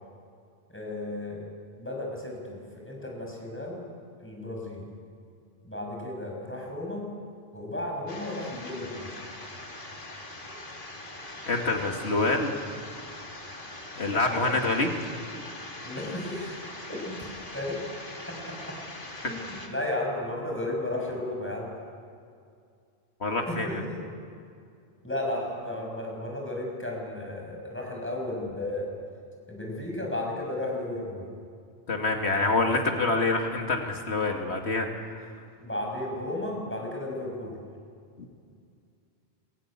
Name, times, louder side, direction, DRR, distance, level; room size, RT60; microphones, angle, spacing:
voice 1, 0.7-1.5 1.8-2.6 2.8-3.9 4.2-4.9 5.6-7.1 7.5-9.1 14.3-14.5 15.8-16.6 16.9-17.2 17.5-17.8 19.2-21.7 23.5-24.0 25.0-28.9 29.5-31.2 35.6-37.6, left 1 dB, 10° left, -1 dB, 5.8 m, -34 dB
sound 1, 8.1-19.7, left 2 dB, 50° left, 2.6 m, -42 dB
voice 2, 11.5-12.7 13.9-14.9 23.2-23.8 31.9-35.2, left 2 dB, 75° left, 2 dB, 2.6 m, -26 dB
23.5 x 16.0 x 10.0 m, 2.3 s
omnidirectional pair, 1.1 m